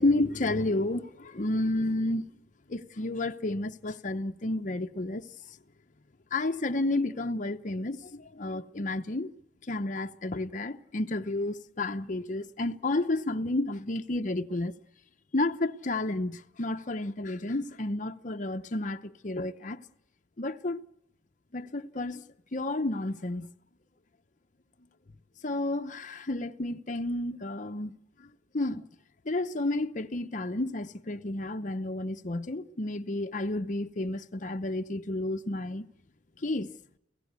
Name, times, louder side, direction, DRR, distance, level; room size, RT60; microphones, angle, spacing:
voice 1, 0.0-2.3 2.7-5.3 6.3-9.3 9.7-14.8 15.3-19.8 20.4-20.8 21.5-22.2 22.5-23.5 25.4-28.3 28.5-28.9 29.2-35.9 36.4-36.8, left 2 dB, 40° left, 0.8 m, -31 dB
29.5 x 16.5 x 8.1 m
head